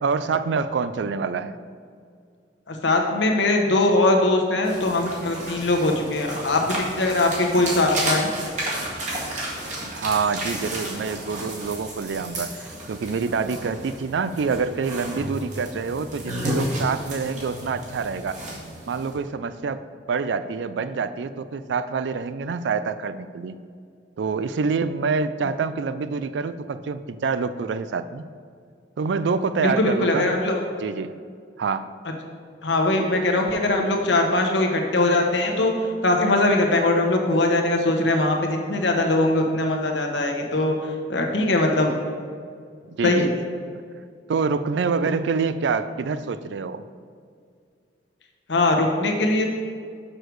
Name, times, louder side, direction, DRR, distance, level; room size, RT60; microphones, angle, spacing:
voice 1, 0.0-1.6 9.9-18.4 18.9-19.8 20.1-23.6 24.2-28.2 29.0-30.3 30.8-31.1 31.6-31.9 42.9-43.3 44.3-46.8, right 5 dB, 70° right, 13 dB, 0.4 m, -26 dB
voice 2, 2.7-8.3 29.6-30.6 32.6-35.7 36.0-40.7 41.1-41.9 43.0-43.3 48.5-49.5, left 2 dB, 70° left, 2 dB, 1.1 m, -21 dB
sound 1, 4.6-19.1, right 1 dB, 40° right, 1.8 m, -32 dB
6.6 x 6.5 x 4.7 m, 2.2 s
head